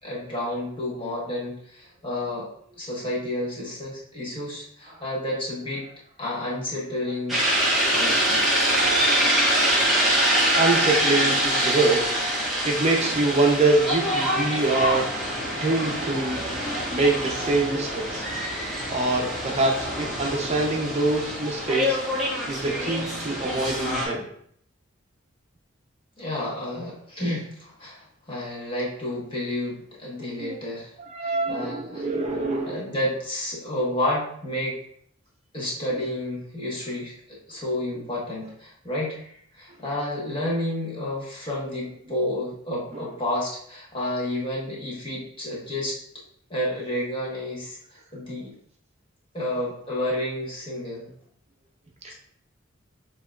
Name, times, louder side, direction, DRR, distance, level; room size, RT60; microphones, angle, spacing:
voice 1, 0.0-2.5 2.8-5.8 6.2-7.4 7.9-8.4 26.2-30.9 31.2-32.1 32.6-34.8 35.5-46.0 46.5-48.5 49.3-51.1, left 1 dB, 25° left, -5 dB, 1.3 m, -30 dB
sound 1, 7.3-24.1, equal, ahead, 1.1 m, -25 dB
voice 2, 10.6-12.3 12.6-15.2 15.5-16.5 16.9-18.2 18.9-22.0 22.5-24.3 30.2-30.5 31.0-32.9 42.9-43.0 52.0-52.1, right 2 dB, 30° right, 0 dB, 0.7 m, -25 dB
7.3 x 3.0 x 2.4 m, 0.66 s
head